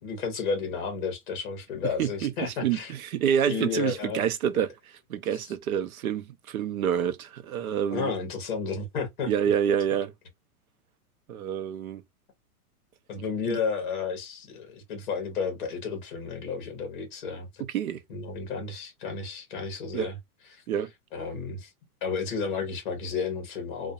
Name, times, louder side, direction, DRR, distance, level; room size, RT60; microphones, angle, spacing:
voice 1, 0.0-2.9 3.5-4.2 7.9-9.3 13.1-17.6 18.1-20.1 20.5-20.6 21.1-21.7 22.0-23.9, left 5 dB, 35° left, 0.8 m, -32 dB
voice 2, 2.0-8.1 9.3-10.1 11.3-12.0 13.5-13.6 17.6-18.0 19.9-20.1 20.7-20.9, right 9 dB, 65° right, 0.6 m, -28 dB
2.3 x 2.2 x 2.6 m
supercardioid pair, 180°, 45 cm